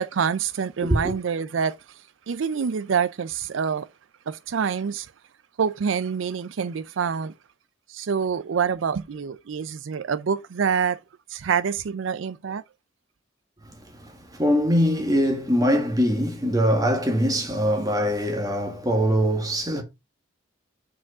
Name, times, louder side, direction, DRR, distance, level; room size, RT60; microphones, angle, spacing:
voice 1, 0.0-3.9 4.3-5.1 5.6-7.3 7.9-11.0 11.3-12.6, right 6 dB, 80° right, 0.4 m, -26 dB
voice 2, 13.8-19.8, equal, 20° right, 1.8 m, -22 dB
6.0 x 4.9 x 4.9 m
head